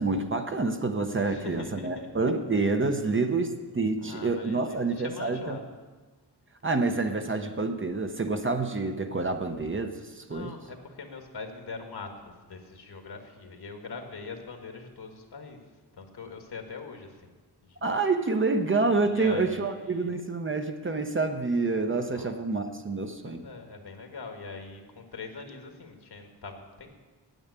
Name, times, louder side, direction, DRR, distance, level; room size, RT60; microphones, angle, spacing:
voice 1, 0.0-5.6 6.6-10.5 17.8-23.5, right 3 dB, 30° right, 6 dB, 0.8 m, -28 dB
voice 2, 1.2-2.1 4.0-5.7 10.3-15.6 15.9-17.3 17.6-17.8 19.0-20.1 21.9-22.3 23.2-26.9, left 4 dB, 70° left, 4 dB, 1.6 m, -42 dB
9.0 x 8.6 x 8.1 m, 1.3 s
wide cardioid pair, 125°, 41 cm